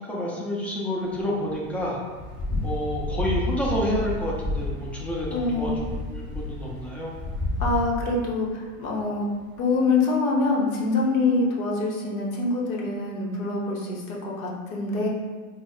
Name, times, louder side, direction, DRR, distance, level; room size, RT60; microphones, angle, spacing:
voice 1, 0.1-2.0 2.6-5.8 6.1-7.1, equal, 5° left, -4 dB, 0.3 m, -29 dB
sound 1, 1.2-8.5 8.8-8.9 9.4-9.5, left 2 dB, 30° left, 1.3 m, -31 dB
voice 2, 5.3-5.8 7.6-9.3 9.6-15.1, left 3 dB, 70° left, -3 dB, 1.0 m, -25 dB
3.8 x 2.1 x 3.6 m, 1.4 s
hypercardioid pair, 100°, 44 cm